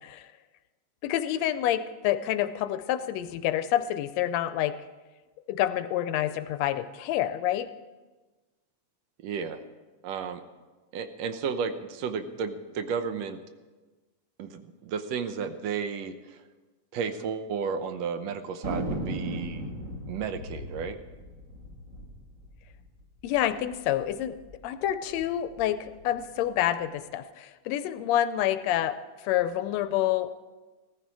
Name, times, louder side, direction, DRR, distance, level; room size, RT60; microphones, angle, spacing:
voice 1, 1.0-4.8 5.5-7.7 23.2-24.4 24.6-30.3, left 12 dB, 80° left, 12 dB, 1.7 m, -28 dB
voice 2, 9.2-9.6 10.0-10.4 10.9-13.4 14.4-16.4 16.9-19.7 20.1-21.0, right 6 dB, 70° right, 10 dB, 1.9 m, -33 dB
Thunder, 18.6-23.5 23.7-23.8 24.0-24.6 25.1-26.3, right 1 dB, 35° right, 1.6 m, -37 dB
16.0 x 14.5 x 4.7 m, 1.3 s
omnidirectional pair, 3.3 m